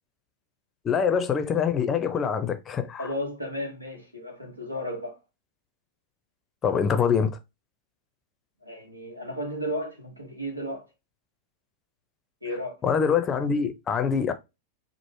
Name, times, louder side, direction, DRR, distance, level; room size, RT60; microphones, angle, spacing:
voice 1, 0.8-3.1 6.6-7.4 12.8-14.3, left 6 dB, 25° left, 0.5 m, -24 dB
voice 2, 3.0-5.2 8.6-10.9 12.4-12.8, equal, 90° right, 0.9 m, -34 dB
3.0 x 2.0 x 3.2 m
figure-of-eight pair, 90°, 0 cm